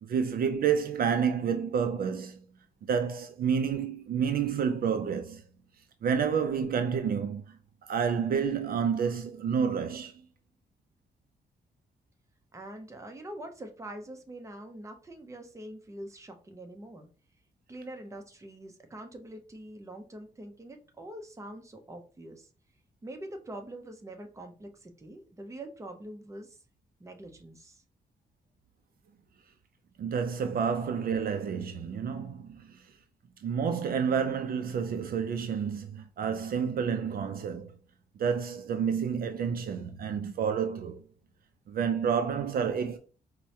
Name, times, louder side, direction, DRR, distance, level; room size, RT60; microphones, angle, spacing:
voice 1, 0.0-2.4 2.9-5.4 6.0-10.1 30.0-32.9 33.4-37.7 38.2-41.0 41.7-43.0, right 7 dB, 60° right, 0.4 m, -29 dB
voice 2, 12.5-17.1 17.7-22.5 23.0-26.6 27.0-27.8, right 1 dB, 20° right, 0.6 m, -44 dB
4.5 x 2.1 x 2.8 m
cardioid pair, 100°, 17 cm